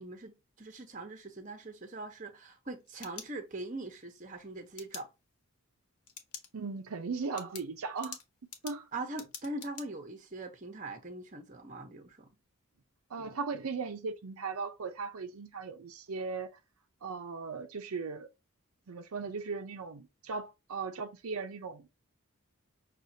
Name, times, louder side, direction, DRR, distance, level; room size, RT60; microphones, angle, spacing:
voice 1, 0.0-5.1 8.9-12.3, right 2 dB, 35° right, 0.9 m, -42 dB
sound 1, 2.6-3.8 4.8-5.0 6.1-6.5 6.9-7.0 7.4-9.9, left 7 dB, 90° left, 1.0 m, -46 dB
voice 2, 6.5-8.2 8.6-8.9 13.1-16.6 17.0-18.3 18.9-21.9, right 4 dB, 80° right, 0.6 m, -38 dB
6.2 x 2.4 x 2.7 m
head